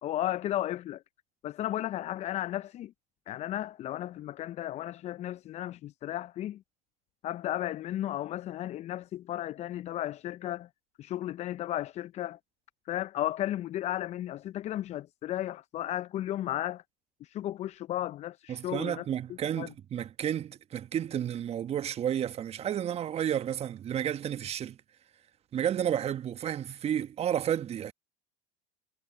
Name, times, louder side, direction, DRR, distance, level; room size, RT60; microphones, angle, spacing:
voice 1, 0.0-1.0 1.4-2.9 3.3-6.6 7.2-10.7 11.0-12.4 12.9-16.8 17.2-19.1 19.6-19.7, left 13 dB, 40° left, 0.6 m, -34 dB
voice 2, 18.5-24.8 25.5-27.9, right 10 dB, 35° right, 1.4 m, -31 dB
hypercardioid pair, 80°, 17 cm